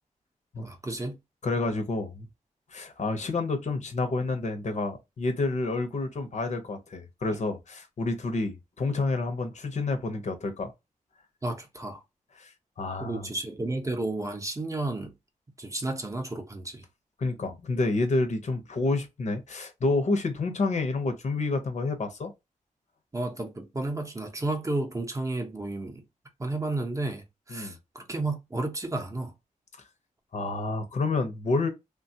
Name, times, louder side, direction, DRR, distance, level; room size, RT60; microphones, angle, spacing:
voice 1, 0.6-1.2 11.4-12.0 13.0-15.1 15.6-16.8 23.1-26.0 26.4-29.3, right 2 dB, 20° right, 0.6 m, -32 dB
voice 2, 1.4-2.3 2.7-10.7 12.4-13.3 17.2-22.3 27.5-27.8 30.3-31.7, left 3 dB, 55° left, 0.7 m, -29 dB
3.3 x 2.2 x 2.7 m
wide cardioid pair, 160°, 14 cm